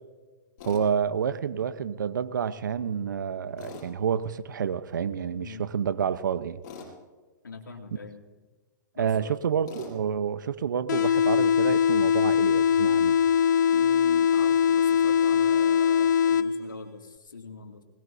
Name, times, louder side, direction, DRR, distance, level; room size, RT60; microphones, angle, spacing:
Tools, 0.6-0.8 3.6-3.9 6.6-6.9 9.7-10.0, left 5 dB, 45° left, 6.9 m, -42 dB
voice 1, 0.6-6.6 9.0-13.2, right 7 dB, 75° right, 0.9 m, -29 dB
voice 2, 5.3-5.8 7.4-8.2 8.9-9.4 13.7-17.8, left 4 dB, 90° left, 2.6 m, -43 dB
sound 1, 10.9-16.9, left 8 dB, 65° left, 0.6 m, -22 dB
21.0 x 20.5 x 2.8 m
hypercardioid pair, 120°, 10 cm